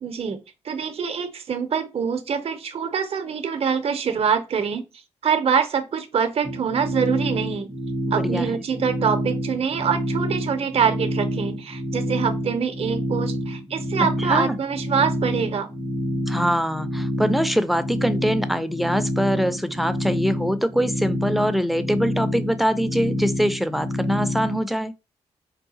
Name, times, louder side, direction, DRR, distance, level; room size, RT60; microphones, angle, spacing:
voice 1, 0.0-4.9 5.2-7.7 8.1-15.7, right 6 dB, 50° right, 0.6 m, -25 dB
sound 1, 6.4-24.6, equal, 55° left, 1.4 m, -28 dB
voice 2, 8.1-8.6 14.2-14.6 16.3-24.9, equal, ahead, 0.5 m, -23 dB
4.6 x 2.4 x 2.7 m
supercardioid pair, 45°, 13 cm